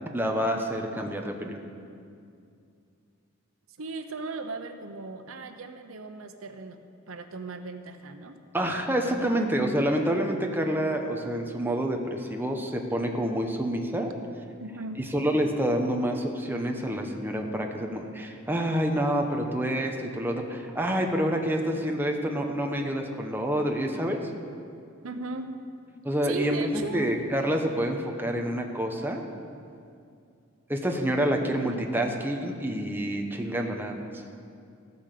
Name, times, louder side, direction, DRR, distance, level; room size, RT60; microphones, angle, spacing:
voice 1, 0.1-1.6 8.5-14.1 15.1-24.2 26.0-29.2 30.7-34.1, equal, 10° right, 2 dB, 1.0 m, -28 dB
voice 2, 3.8-8.4 8.8-8.9 14.6-15.0 15.4-15.7 25.0-25.5 26.2-27.1, right 3 dB, 85° right, 7 dB, 0.9 m, -37 dB
14.0 x 9.6 x 6.7 m, 2.4 s
head